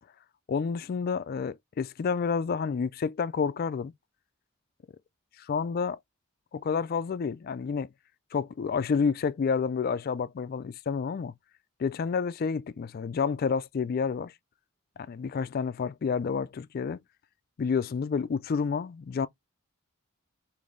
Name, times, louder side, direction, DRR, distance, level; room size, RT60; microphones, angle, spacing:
voice 1, 0.5-3.9 5.4-6.0 6.5-7.9 8.3-11.3 11.8-14.3 15.0-17.0 17.6-19.3, left 5 dB, 45° left, 0.3 m, -29 dB
3.3 x 2.6 x 3.7 m
head